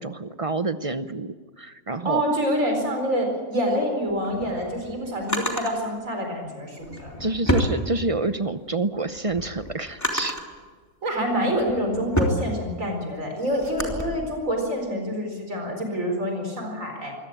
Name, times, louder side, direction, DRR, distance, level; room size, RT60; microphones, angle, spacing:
voice 1, 0.0-2.2 7.2-10.4, right 2 dB, 30° right, 11 dB, 0.7 m, -28 dB
voice 2, 2.0-7.2 11.0-17.1, equal, 80° right, 3 dB, 4.8 m, -27 dB
Drawer open or close, 4.1-5.7 6.8-8.4 8.9-10.6 11.2-14.0, left 1 dB, 10° left, 3.0 m, -29 dB
24.5 x 17.0 x 8.8 m, 1.5 s
omnidirectional pair, 1.4 m